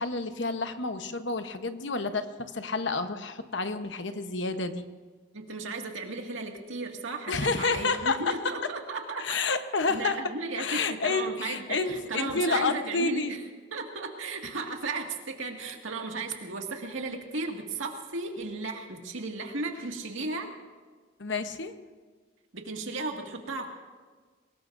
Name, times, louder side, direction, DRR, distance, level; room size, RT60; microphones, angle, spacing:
voice 1, 0.0-4.9 7.3-8.4 9.2-10.2 10.6-13.4 21.2-21.7, left 3 dB, 65° left, 8 dB, 1.0 m, -29 dB
voice 2, 5.3-9.4 9.9-13.4 13.7-20.5 22.5-23.7, right 3 dB, 85° right, 2 dB, 2.1 m, -35 dB
23.0 x 20.0 x 2.6 m, 1.5 s
head